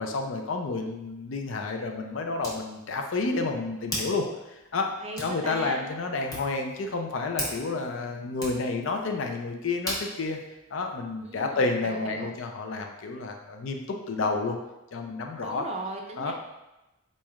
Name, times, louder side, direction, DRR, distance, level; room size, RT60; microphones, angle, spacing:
voice 1, 0.0-4.9 5.2-10.4 10.7-14.6 14.9-15.7 16.2-16.3, left 3 dB, 70° left, 3 dB, 0.5 m, -30 dB
Hands, 0.8-11.6, left 1 dB, 20° left, 0.8 m, -41 dB
voice 2, 5.0-5.8 11.2-12.3 15.4-16.3, right 2 dB, 30° right, 1 dB, 0.4 m, -38 dB
4.1 x 3.1 x 2.4 m, 0.98 s
head